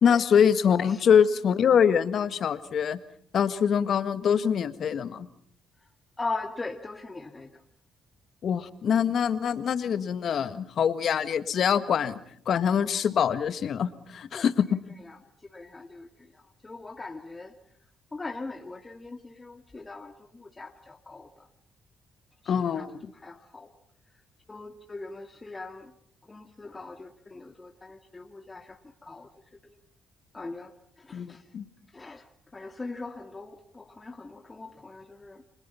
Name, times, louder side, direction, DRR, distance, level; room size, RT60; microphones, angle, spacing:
voice 1, 0.0-3.0 3.3-5.3 8.4-12.2 12.5-14.8 22.5-23.1 31.1-31.7, left 7 dB, 60° left, 12 dB, 1.7 m, -24 dB
voice 2, 6.2-7.5 14.3-14.4 15.1-15.2 15.5-16.1 16.6-17.5 18.1-21.4 22.4-22.8 23.2-23.7 24.5-25.9 26.3-29.3 30.3-30.7 31.0-31.4 31.9-32.2 32.5-35.4, left 3 dB, 25° left, 4 dB, 2.2 m, -40 dB
29.5 x 23.5 x 5.7 m, 0.63 s
supercardioid pair, 55°, 0 cm